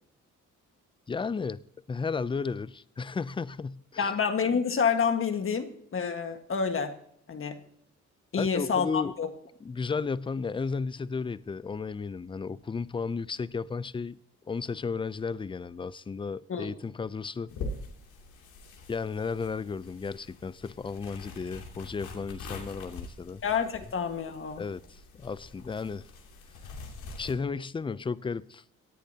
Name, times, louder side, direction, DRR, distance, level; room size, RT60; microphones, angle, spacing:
voice 1, 1.1-1.6 1.9-4.1 8.4-9.1 9.6-14.2 14.5-17.5 18.9-23.4 24.6-26.1 27.2-28.6, left 5 dB, 15° left, 0.4 m, -34 dB
voice 2, 4.0-7.0 7.3-7.6 8.3-9.3 16.5-16.7 23.4-24.6, left 6 dB, 45° left, 1.6 m, -28 dB
sound 1, 17.5-27.3, left 3 dB, 80° left, 2.8 m, -44 dB
18.0 x 10.0 x 2.8 m
cardioid pair, 90°, 30 cm